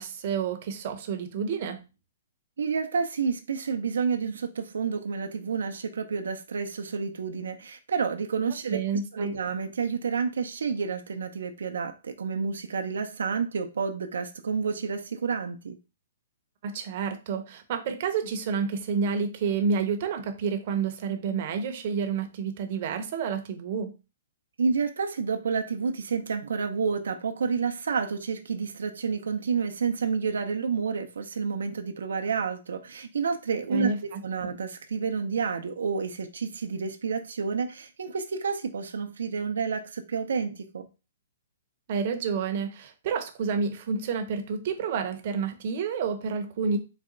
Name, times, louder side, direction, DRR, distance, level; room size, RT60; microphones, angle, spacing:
voice 1, 0.0-1.8 8.7-9.3 16.6-23.9 33.7-34.5 41.9-46.8, right 5 dB, 45° right, 0.7 m, -29 dB
voice 2, 2.6-8.8 9.1-15.8 24.6-33.9 34.2-40.9, right 5 dB, 90° right, 0.5 m, -29 dB
4.0 x 2.2 x 3.7 m
hypercardioid pair, 160°, 0 cm